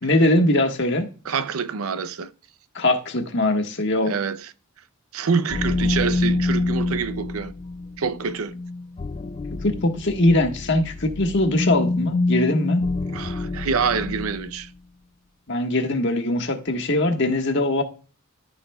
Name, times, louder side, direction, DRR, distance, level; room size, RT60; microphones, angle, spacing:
voice 1, 0.0-1.1 2.7-4.1 9.6-12.8 15.5-17.8, left 1 dB, 55° left, 1.4 m, -21 dB
voice 2, 1.2-2.3 4.0-4.5 5.1-7.5 8.0-8.5 13.1-14.7, right 5 dB, 80° right, 0.6 m, -26 dB
sound 1, 5.5-14.7, left 2 dB, 30° left, 0.3 m, -27 dB
13.5 x 4.9 x 2.3 m
head